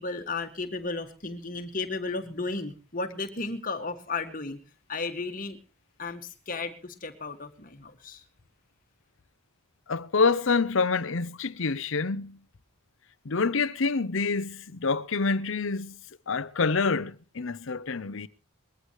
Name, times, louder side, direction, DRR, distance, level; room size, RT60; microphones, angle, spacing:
voice 1, 0.0-4.6 4.9-5.6 6.0-8.2, left 3 dB, 40° left, 1.9 m, -34 dB
voice 2, 9.9-12.4 13.2-16.0 16.3-18.3, left 4 dB, 65° left, 0.7 m, -27 dB
21.5 x 14.5 x 3.1 m
head